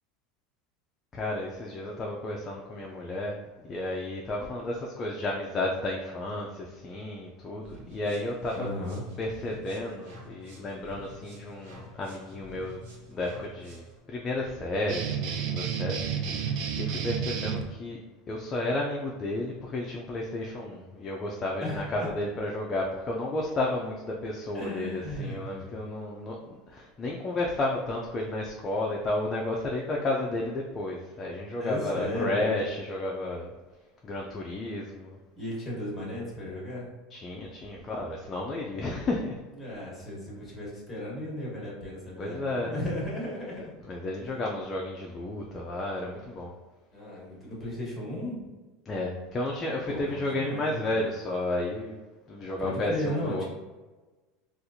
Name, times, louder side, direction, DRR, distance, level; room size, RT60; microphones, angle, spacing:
voice 1, 1.1-3.4 3.6-8.7 9.2-12.8 13.1-18.0 18.3-33.5 34.0-35.2 37.1-39.4 42.2-42.7 43.9-46.5 48.9-52.0 52.3-53.5, left 2 dB, 20° left, -1 dB, 0.3 m, -32 dB
sound 1, 7.6-14.0, left 1 dB, 75° right, 1.2 m, -49 dB
voice 2, 8.5-9.0 21.6-21.9 24.5-25.7 31.6-32.4 35.3-36.9 39.5-43.7 44.2-44.3 46.9-48.4 49.9-51.0 52.6-53.5, left 1 dB, 5° left, -5 dB, 1.2 m, -35 dB
sound 2, 14.9-17.6, right 7 dB, 50° right, 0.4 m, -30 dB
4.2 x 2.4 x 2.6 m, 1.2 s
supercardioid pair, 160°, 0 cm